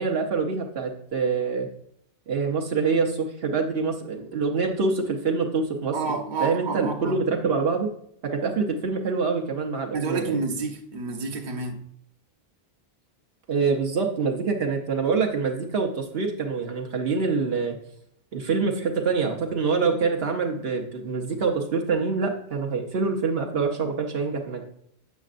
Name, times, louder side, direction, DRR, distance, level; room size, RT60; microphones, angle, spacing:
voice 1, 0.0-1.7 2.3-5.9 6.4-7.9 8.2-10.4 13.5-17.8 18.3-24.6, right 4 dB, 70° right, 1.1 m, -25 dB
voice 2, 5.9-7.1 9.9-11.8, right 4 dB, 50° right, 1.0 m, -29 dB
8.1 x 6.4 x 2.5 m
omnidirectional pair, 1.0 m